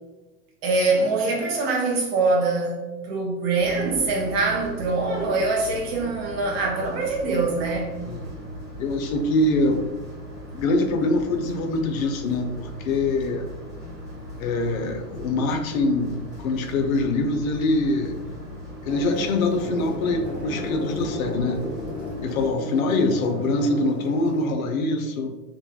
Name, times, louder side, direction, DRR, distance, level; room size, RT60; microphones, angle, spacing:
voice 1, 0.6-8.0, right 3 dB, 40° right, 0.5 m, -24 dB
sound 1, 3.6-22.5, equal, 20° right, 1.1 m, -39 dB
voice 2, 8.8-9.8 10.5-13.5 14.4-16.1 16.4-18.2 18.8-21.7 22.2-25.3, left 2 dB, 60° left, 0.5 m, -24 dB
sound 2, 18.8-24.5, left 1 dB, 10° left, 0.7 m, -33 dB
3.1 x 2.2 x 2.2 m
figure-of-eight pair, 100°, 49 cm